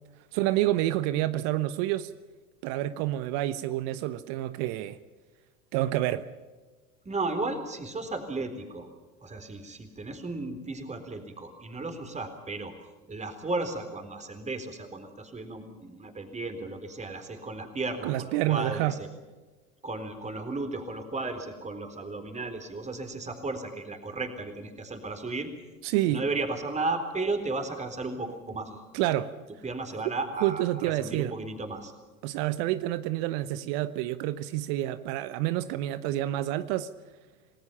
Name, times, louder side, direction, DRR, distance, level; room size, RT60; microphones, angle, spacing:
voice 1, 0.3-2.1 2.6-5.0 5.7-6.3 18.0-19.0 25.8-26.3 28.9-29.3 30.4-31.3 32.2-36.9, right 14 dB, 50° right, 1.1 m, -28 dB
voice 2, 7.1-8.9 9.2-12.7 13.1-19.1 19.8-25.5 26.1-28.8 29.6-31.9, right 3 dB, 15° right, 3.9 m, -34 dB
29.0 x 19.5 x 5.8 m
figure-of-eight pair, 80°, 43 cm